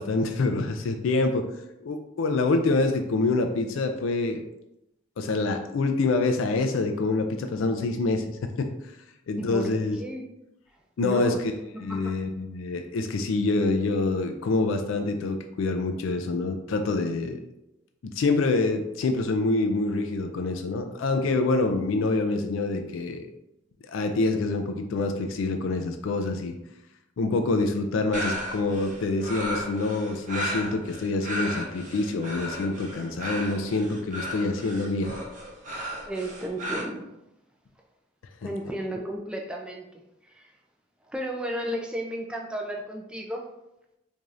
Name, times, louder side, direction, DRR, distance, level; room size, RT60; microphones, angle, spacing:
voice 1, 0.0-1.5 1.8-4.4 5.2-8.7 9.3-10.0 11.0-11.5 11.8-17.4 18.0-23.3 23.9-26.5 27.2-35.1 38.4-38.5, left 3 dB, 85° left, 5 dB, 0.4 m, -26 dB
voice 2, 9.3-10.2 11.0-11.4 11.7-12.2 36.1-37.0 38.4-39.9 40.3-40.5 41.1-43.5, equal, 5° right, 1 dB, 0.3 m, -33 dB
sound 1, 28.1-36.8, equal, 40° right, 0.7 m, -35 dB
4.8 x 2.7 x 2.4 m, 0.88 s
head